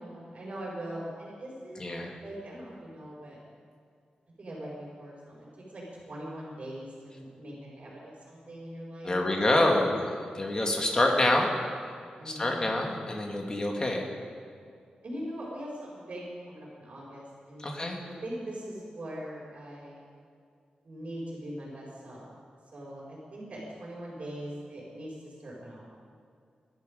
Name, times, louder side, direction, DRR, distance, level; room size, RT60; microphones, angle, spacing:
voice 1, 0.0-1.8 2.2-3.4 4.4-9.6 12.2-12.7 15.0-17.7 18.1-20.0 20.8-22.3 22.7-25.9, right 1 dB, 45° right, -8 dB, 4.9 m, -41 dB
voice 2, 1.8-2.1 9.0-10.0 10.3-11.5 12.3-14.1 17.6-18.0, left 1 dB, 30° left, 1 dB, 2.2 m, -26 dB
20.5 x 12.0 x 5.2 m, 2.3 s
wide cardioid pair, 115°, 3 cm